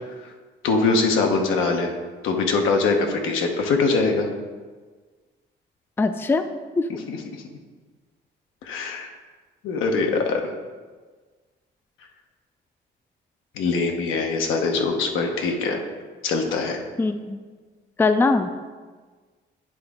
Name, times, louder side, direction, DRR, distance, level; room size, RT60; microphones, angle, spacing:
voice 1, 0.6-1.9 2.2-4.3 7.1-7.2 8.6-9.1 9.6-10.5 13.5-15.8 16.2-16.8, left 4 dB, 85° left, 3 dB, 0.9 m, -22 dB
voice 2, 6.0-6.5 6.8-6.9 17.0-17.4 18.0-18.7, left 3 dB, 10° left, 9 dB, 0.3 m, -21 dB
9.6 x 3.8 x 3.5 m, 1.4 s
cardioid pair, 90°, 20 cm